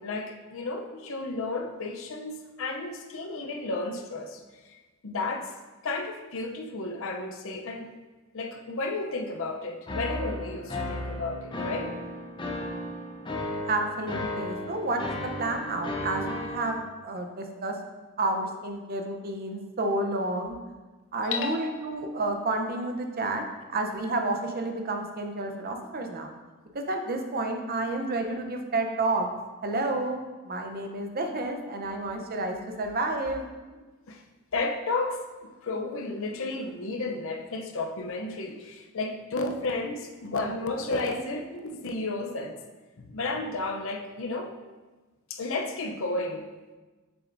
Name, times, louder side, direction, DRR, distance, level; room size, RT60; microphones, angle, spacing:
voice 1, 0.0-4.4 5.0-5.5 5.8-7.9 8.3-11.9 21.2-21.7 34.1-34.2 34.5-42.6 43.0-44.5 45.3-46.4, left 3 dB, 65° left, 4 dB, 0.6 m, -32 dB
sound 1, 9.9-16.7, left 1 dB, 25° left, 0.7 m, -34 dB
voice 2, 13.7-17.8 18.2-20.6 21.1-26.3 26.7-29.3 29.6-33.5, right 2 dB, 45° right, 4 dB, 0.7 m, -30 dB
7.0 x 6.7 x 2.6 m, 1.3 s
head